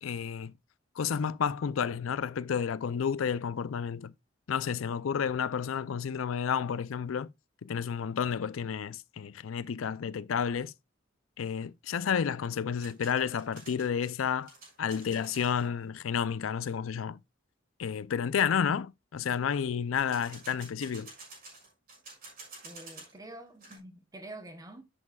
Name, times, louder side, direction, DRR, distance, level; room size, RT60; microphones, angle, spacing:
voice 1, 0.0-0.5 1.0-4.1 4.5-7.3 7.6-10.7 11.4-14.5 14.8-17.2 17.8-21.1, left 7 dB, 85° left, 0.4 m, -31 dB
sound 1, 12.8-15.7 20.0-23.2 23.5-23.8, right 3 dB, 45° right, 6.0 m, -50 dB
voice 2, 22.6-24.8, right 1 dB, 20° right, 1.0 m, -47 dB
11.0 x 7.7 x 2.3 m
head